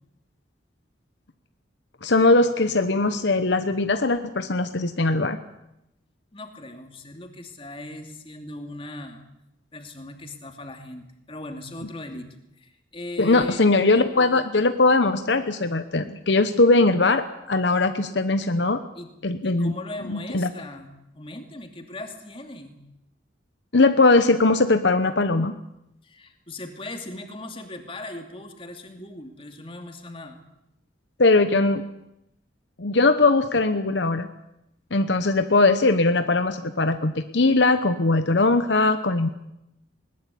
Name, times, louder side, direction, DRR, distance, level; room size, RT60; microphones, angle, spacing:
voice 1, 2.0-5.4 13.2-18.8 19.2-19.7 20.1-20.5 23.7-25.5 31.2-31.8 32.8-34.3 34.9-39.3, left 3 dB, 65° left, 9 dB, 1.0 m, -20 dB
voice 2, 6.3-9.2 9.7-12.3 12.6-13.6 19.0-19.1 19.4-20.9 21.1-22.8 26.0-30.4, left 2 dB, 30° left, 5 dB, 2.7 m, -38 dB
20.5 x 20.0 x 8.6 m, 0.86 s
head